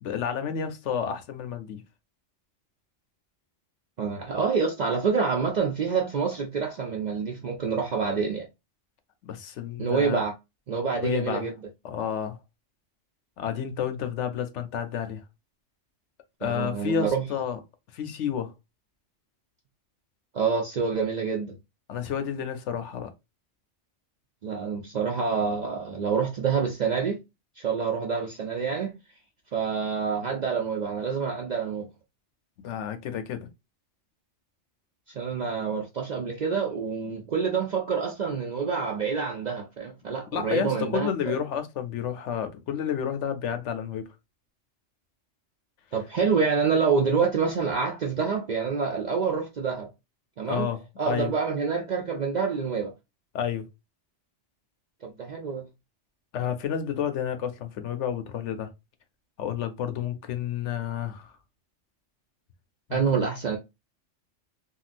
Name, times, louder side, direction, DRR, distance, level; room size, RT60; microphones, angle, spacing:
voice 1, 0.0-1.8 9.2-10.2 11.0-11.5 11.8-12.4 13.4-15.2 16.4-17.6 17.9-18.5 21.9-23.1 32.6-33.5 40.3-44.1 50.5-51.3 53.3-53.7 56.3-58.7 59.4-61.3 62.9-63.0, left 8 dB, 75° left, 0.9 m, -30 dB
voice 2, 4.0-8.5 9.8-10.3 10.7-11.5 16.4-17.3 20.3-21.6 24.4-27.2 27.6-28.9 29.5-31.9 35.1-41.3 45.9-49.9 50.4-50.7 51.0-52.9 55.0-55.7 62.9-63.6, right 5 dB, 60° right, 0.5 m, -27 dB
3.6 x 2.2 x 2.4 m
omnidirectional pair, 1.2 m